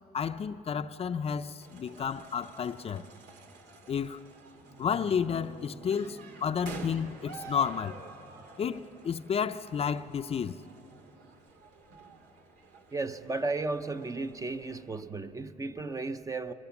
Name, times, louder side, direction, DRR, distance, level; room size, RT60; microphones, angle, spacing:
voice 1, 0.1-3.0 3.9-4.2 4.8-8.0 8.6-10.6, left 7 dB, 35° left, 0.5 m, -31 dB
sound 1, 1.6-15.0, right 4 dB, 85° right, 2.0 m, -50 dB
sound 2, 4.6-9.8, right 2 dB, 65° right, 4.3 m, -54 dB
voice 2, 12.9-16.5, right 3 dB, 20° right, 0.6 m, -34 dB
23.5 x 19.5 x 7.2 m
cardioid pair, 110°, 17 cm